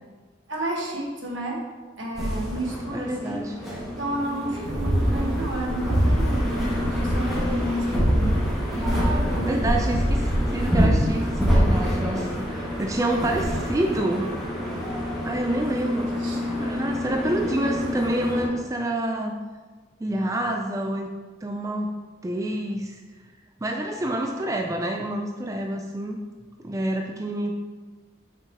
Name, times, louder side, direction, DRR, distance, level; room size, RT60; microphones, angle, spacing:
voice 1, 0.5-1.6 2.0-8.4 8.7-9.6 11.5-12.2 13.0-13.4 13.7-14.9 16.2-16.4, right 1 dB, 80° right, -1 dB, 1.4 m, -33 dB
sound 1, 2.1-18.5, equal, ahead, 1.8 m, -25 dB
voice 2, 2.9-3.6 9.5-14.3 15.2-19.3 20.0-21.1 21.4-21.9 22.2-23.0 23.6-26.2 26.6-27.5, right 1 dB, 15° right, 2 dB, 0.4 m, -28 dB
6.8 x 6.0 x 2.9 m, 1.4 s
head